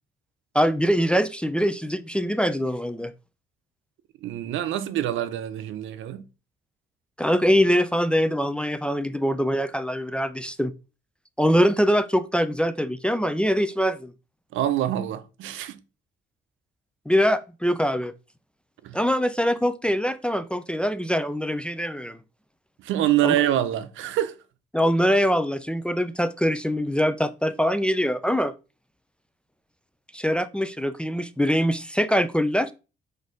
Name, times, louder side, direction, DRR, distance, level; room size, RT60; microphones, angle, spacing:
voice 1, 0.5-3.1 7.2-10.7 11.4-14.1 17.1-18.1 18.9-22.2 23.2-23.3 24.7-28.5 30.1-32.7, equal, 5° left, 0.3 m, -23 dB
voice 2, 4.2-6.3 14.5-15.8 18.8-19.0 22.8-24.4, right 12 dB, 80° right, 0.5 m, -25 dB
4.0 x 2.7 x 4.8 m
cardioid pair, 90°, 20 cm